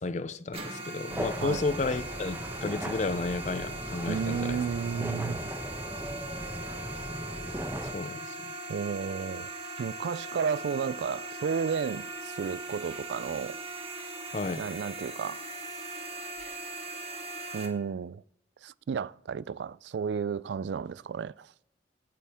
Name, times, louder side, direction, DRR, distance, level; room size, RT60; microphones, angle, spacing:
voice 1, 0.0-4.6 7.9-8.6 14.3-14.7, left 3 dB, 40° left, 0.5 m, -32 dB
sound 1, 0.5-17.7, right 2 dB, 35° right, 1.7 m, -40 dB
sound 2, 1.1-7.9, right 1 dB, 10° right, 0.9 m, -38 dB
voice 2, 4.1-5.5 8.7-9.5 9.8-13.6 14.6-15.4 17.5-18.2 18.6-21.5, right 6 dB, 75° right, 0.3 m, -32 dB
17.5 x 8.5 x 3.5 m
head